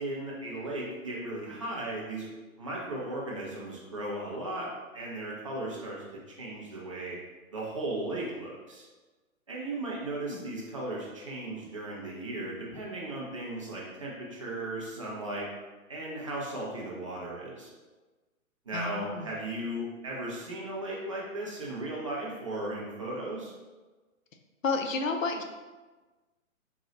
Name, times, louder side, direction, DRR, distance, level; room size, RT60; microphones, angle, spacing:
voice 1, 0.0-2.3 2.6-7.2 7.5-8.8 9.5-15.5 15.9-17.7 18.7-23.5, right 1 dB, 25° right, -5 dB, 0.4 m, -36 dB
voice 2, 18.7-19.3 24.6-25.4, left 4 dB, 70° left, 4 dB, 0.5 m, -31 dB
3.9 x 2.2 x 2.9 m, 1.2 s
figure-of-eight pair, 125°, 41 cm